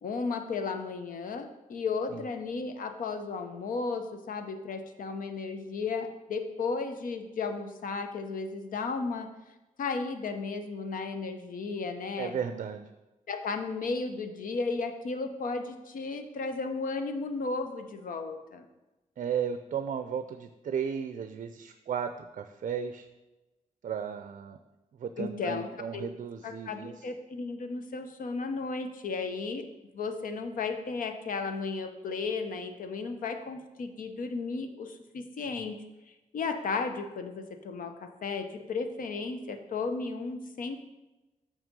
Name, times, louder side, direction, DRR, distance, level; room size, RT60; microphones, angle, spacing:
voice 1, 0.0-9.3 9.8-12.3 13.3-18.7 25.2-26.1 26.4-29.6 29.9-35.8 36.3-40.8, left 4 dB, 85° left, 7 dB, 0.8 m, -34 dB
voice 2, 12.2-12.9 19.2-23.1 23.8-24.6 24.9-27.0, right 7 dB, 65° right, 8 dB, 0.5 m, -35 dB
6.7 x 6.2 x 5.3 m, 1.0 s
wide cardioid pair, 120°, 14 cm